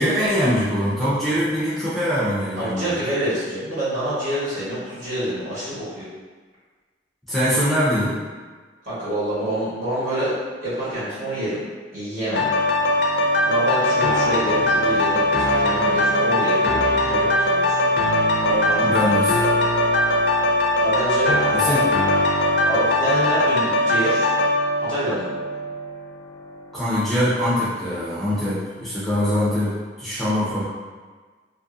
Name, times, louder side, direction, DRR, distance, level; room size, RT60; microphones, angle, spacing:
voice 1, 0.0-3.0 7.3-8.2 18.8-19.4 21.5-21.9 26.7-30.6, equal, ahead, -11 dB, 0.5 m, -22 dB
voice 2, 2.6-6.1 8.8-11.6 11.9-12.5 13.4-17.8 18.4-19.2 20.8-21.8 22.6-24.3 24.8-25.3, right 1 dB, 45° right, -11 dB, 1.3 m, -27 dB
sound 1, 12.3-26.0 26.5-26.6, left 1 dB, 70° left, 0.4 m, -20 dB
2.6 x 2.5 x 2.5 m, 1.4 s
head